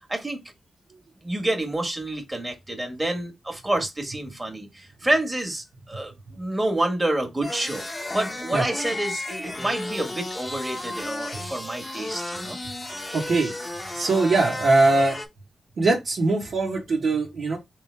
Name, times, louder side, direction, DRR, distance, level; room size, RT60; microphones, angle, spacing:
voice 1, 0.1-0.4 1.2-7.9 8.1-12.6, right 1 dB, 25° right, 1.7 m, -28 dB
sound 1, 7.4-15.3, left 2 dB, 30° left, 1.1 m, -33 dB
voice 2, 13.1-13.5 13.9-15.2 15.8-17.6, right 3 dB, 70° right, 1.4 m, -21 dB
3.9 x 3.3 x 3.5 m
cardioid pair, 50°, 0 cm